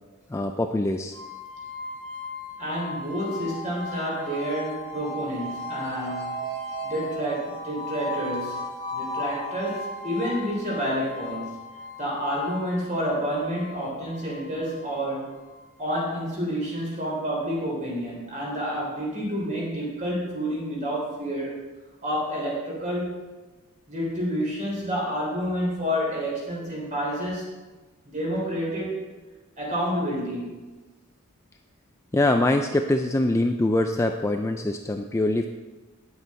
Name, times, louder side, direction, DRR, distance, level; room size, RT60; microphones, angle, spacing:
voice 1, 0.3-1.2 32.1-35.5, left 1 dB, 15° left, 5 dB, 0.3 m, -23 dB
sound 1, 1.1-16.1, left 1 dB, 55° right, 1.1 m, -36 dB
voice 2, 2.6-6.5 6.8-11.5 12.0-15.3 15.8-21.6 22.0-23.2 23.9-27.5 28.0-29.1 29.6-30.7, equal, 35° right, -3 dB, 3.3 m, -29 dB
9.6 x 8.1 x 4.3 m, 1.2 s
head